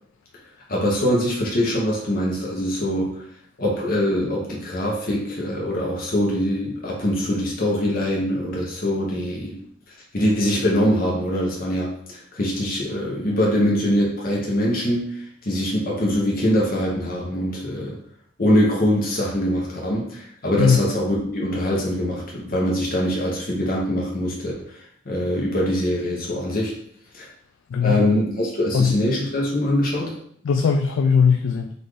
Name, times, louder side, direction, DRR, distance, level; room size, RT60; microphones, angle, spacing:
voice 1, 0.7-3.3 3.6-9.6 9.9-18.0 18.4-26.8 27.1-27.3 27.8-30.1, equal, 50° left, -3 dB, 0.9 m, -23 dB
voice 2, 27.7-28.0 28.7-29.0 30.4-31.7, left 6 dB, 75° left, 6 dB, 0.3 m, -19 dB
4.0 x 2.6 x 4.8 m, 0.66 s
head